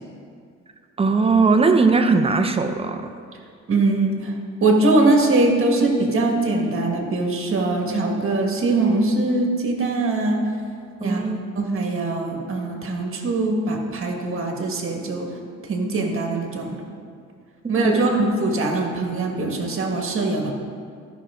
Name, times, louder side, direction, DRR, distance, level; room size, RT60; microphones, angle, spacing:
voice 1, 1.0-3.1 11.0-11.5 17.6-18.1, right 4 dB, 20° right, 6 dB, 0.7 m, -19 dB
voice 2, 3.7-4.3 4.6-10.4 11.0-15.3 15.6-16.8 17.7-20.5, right 2 dB, 45° right, 2 dB, 1.6 m, -22 dB
13.0 x 5.9 x 3.7 m, 2.2 s
cardioid pair, 90°, 30 cm